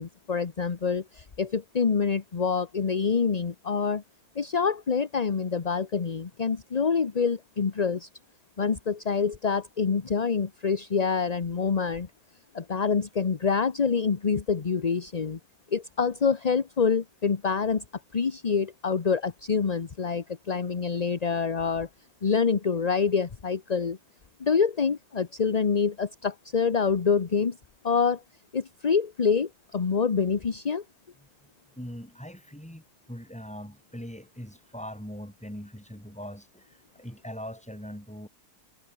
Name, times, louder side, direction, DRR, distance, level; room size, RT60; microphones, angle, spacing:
voice 1, 0.0-4.0 4.4-8.1 8.6-12.1 12.5-15.4 15.7-17.8 18.1-21.9 22.2-24.0 24.4-27.6 27.8-28.2 28.5-30.8, left 5 dB, 30° left, 0.8 m, -26 dB
voice 2, 31.8-38.3, equal, 5° left, 4.4 m, -41 dB
omnidirectional pair, 1.7 m